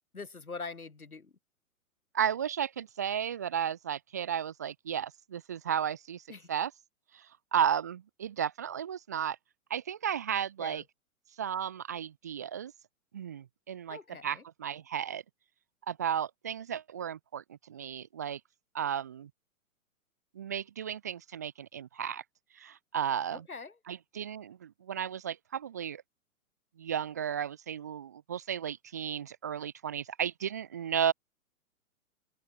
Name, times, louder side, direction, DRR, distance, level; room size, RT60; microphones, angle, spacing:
voice 1, 0.1-1.3 6.3-6.5 10.6-10.8 13.9-14.4 23.3-23.8, left 4 dB, 80° left, 2.0 m, -43 dB
voice 2, 2.1-6.7 7.1-9.4 9.7-10.8 11.4-12.7 13.1-15.2 15.9-18.4 18.7-19.3 20.3-22.2 22.5-23.5 23.9-26.0 26.8-31.1, right 9 dB, 15° right, 0.4 m, -34 dB
figure-of-eight pair, 115°, 43 cm